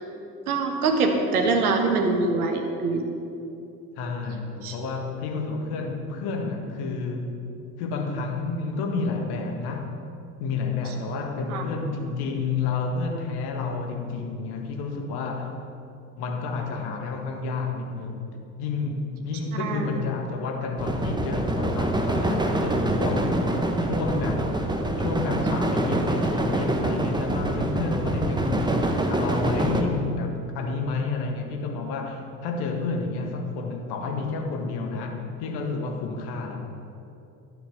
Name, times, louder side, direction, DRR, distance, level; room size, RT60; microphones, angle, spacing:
voice 1, 0.5-3.0 4.6-4.7 11.5-11.6 19.6-20.0, right 3 dB, 75° right, 4 dB, 1.5 m, -24 dB
voice 2, 4.0-7.3 7.8-9.9 10.4-15.5 16.2-18.3 18.6-23.4 23.8-24.5 25.0-28.8 29.1-36.7, left 4 dB, 60° left, 3 dB, 1.8 m, -30 dB
sound 1, 20.8-29.8, right 1 dB, 10° right, 1.3 m, -25 dB
13.0 x 8.1 x 6.9 m, 2.7 s
figure-of-eight pair, 55°, 44 cm